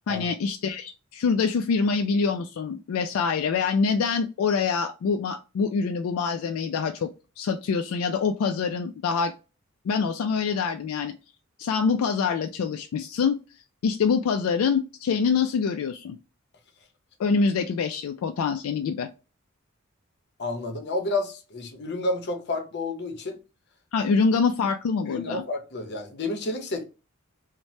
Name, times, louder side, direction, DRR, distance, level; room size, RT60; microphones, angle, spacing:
voice 1, 0.1-7.1 7.4-9.3 9.9-11.1 11.6-13.4 13.8-16.2 17.2-19.1 23.9-25.4, left 5 dB, 80° left, 0.3 m, -25 dB
voice 2, 20.4-23.4 25.0-26.9, left 2 dB, 55° left, 0.7 m, -30 dB
3.1 x 2.1 x 2.7 m
head